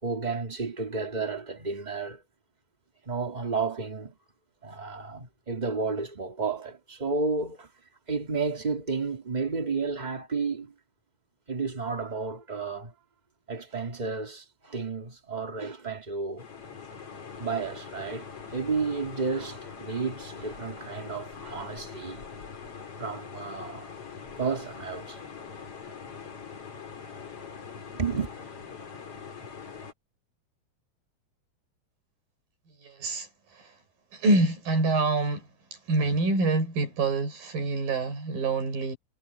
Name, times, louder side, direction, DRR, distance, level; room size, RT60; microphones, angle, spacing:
voice 1, 0.0-2.2 3.0-4.2 4.6-7.7 8.1-10.7 11.5-12.9 13.5-16.5 17.4-22.2 23.0-23.9 24.4-25.3 27.9-28.3, right 4 dB, 20° right, 1.4 m, -32 dB
sound 1, 16.4-29.9, left 6 dB, 40° left, 4.3 m, -43 dB
voice 2, 32.8-33.3 34.1-35.4 35.9-39.0, right 2 dB, 80° right, 7.2 m, -26 dB
omnidirectional pair, 4.0 m